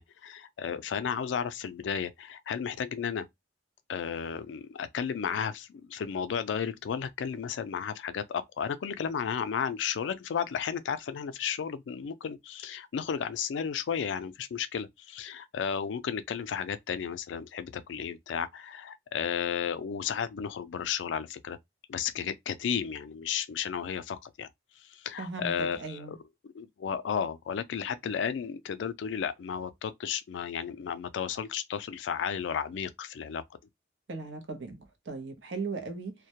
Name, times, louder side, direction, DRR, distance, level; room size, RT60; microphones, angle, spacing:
voice 1, 0.0-3.3 3.9-21.6 21.9-24.5 24.8-26.2 26.4-33.4, left 7 dB, 80° left, 0.3 m, -33 dB
voice 2, 25.2-25.5 25.8-26.1 34.1-34.8 35.1-36.1, right 4 dB, 80° right, 0.7 m, -37 dB
2.2 x 2.1 x 2.8 m
head